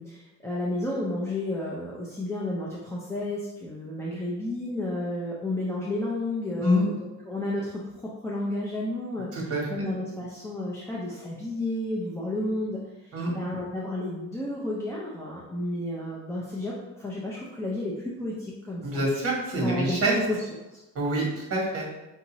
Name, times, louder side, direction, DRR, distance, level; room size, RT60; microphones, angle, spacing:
voice 1, 0.0-19.1 19.6-20.4 20.7-20.8, left 1 dB, 10° left, -6 dB, 0.5 m, -32 dB
voice 2, 9.3-9.9 13.1-13.3 18.8-20.1 20.9-21.8, equal, 50° right, -2 dB, 1.3 m, -26 dB
5.5 x 2.6 x 2.9 m, 1.0 s
wide cardioid pair, 150°, 31 cm